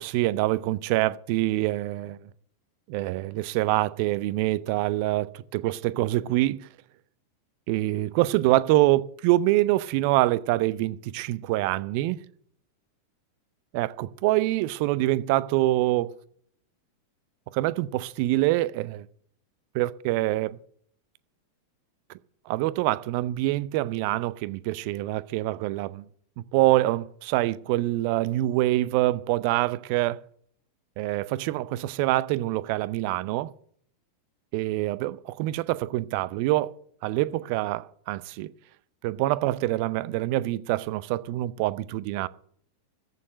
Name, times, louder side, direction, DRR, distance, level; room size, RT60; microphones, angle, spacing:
voice 1, 0.0-2.2 2.9-6.7 7.7-12.2 13.7-16.1 17.5-19.1 19.7-20.6 22.5-26.1 26.5-30.2 31.0-33.5 34.5-36.7 37.0-38.5 39.0-42.3, right 17 dB, 45° right, 0.6 m, -25 dB
14.5 x 6.6 x 7.5 m
figure-of-eight pair, 90°, 0 cm